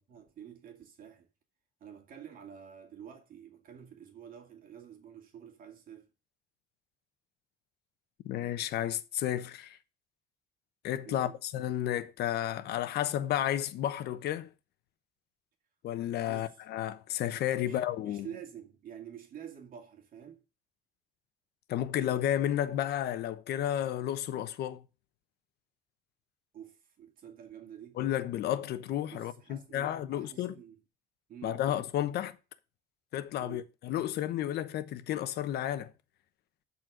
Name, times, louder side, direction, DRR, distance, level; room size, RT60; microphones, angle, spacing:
voice 1, 0.1-1.3 1.8-6.1 11.0-11.4 16.2-16.5 17.6-20.4 26.5-28.0 29.1-30.8 31.3-31.6 33.4-33.7, right 9 dB, 55° right, 2.4 m, -48 dB
voice 2, 8.2-9.8 10.8-14.5 15.8-18.3 21.7-24.8 28.0-30.6 31.4-32.4 33.1-35.9, left 11 dB, 70° left, 1.0 m, -32 dB
12.5 x 4.4 x 6.4 m
cardioid pair, 110°, 17 cm